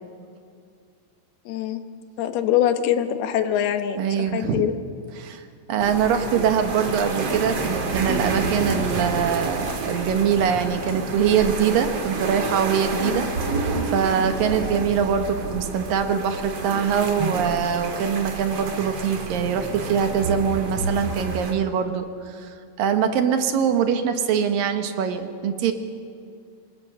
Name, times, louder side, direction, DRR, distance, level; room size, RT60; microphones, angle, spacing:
voice 1, 1.5-1.8 2.2-4.8 13.0-13.3, left 10 dB, 85° left, 8 dB, 3.1 m, -24 dB
voice 2, 4.0-4.7 5.2-5.4 5.7-25.7, right 7 dB, 70° right, 7 dB, 2.7 m, -23 dB
sound 1, 5.8-21.5, right 3 dB, 45° right, 2.6 m, -29 dB
26.0 x 21.0 x 6.4 m, 2.3 s
omnidirectional pair, 4.4 m